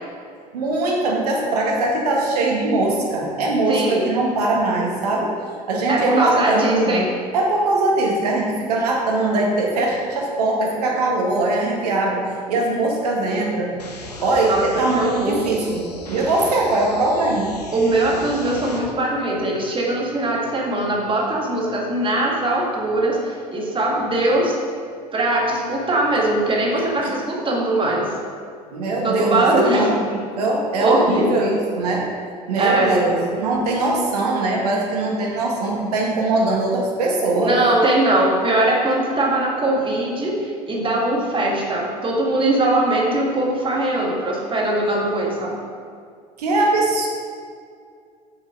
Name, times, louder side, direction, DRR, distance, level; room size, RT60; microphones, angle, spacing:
voice 1, 0.5-5.3 5.7-7.1 7.3-12.2 12.5-13.7 14.2-15.8 16.1-17.5 27.0-27.1 28.7-32.0 32.5-37.5 46.4-47.1, right 2 dB, 75° right, -1 dB, 1.7 m, -21 dB
voice 2, 3.7-4.1 5.9-7.1 14.4-15.4 17.7-24.5 25.1-28.1 29.0-29.9 30.8-31.5 32.6-33.2 37.4-45.6, right 1 dB, 25° right, -2 dB, 2.0 m, -21 dB
sound 1, 13.8-18.8, left 2 dB, 90° left, 1.0 m, -37 dB
7.3 x 6.4 x 5.3 m, 2.2 s
figure-of-eight pair, 70°, 20 cm